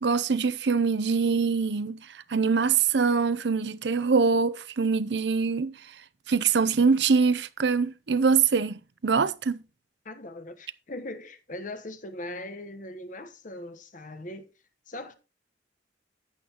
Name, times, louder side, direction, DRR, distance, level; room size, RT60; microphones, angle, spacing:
voice 1, 0.0-2.0 2.3-5.7 6.3-8.7 9.0-9.6, right 5 dB, 70° right, 0.6 m, -23 dB
voice 2, 10.0-14.5 14.9-15.1, left 1 dB, 45° left, 1.1 m, -40 dB
11.5 x 7.8 x 2.9 m
head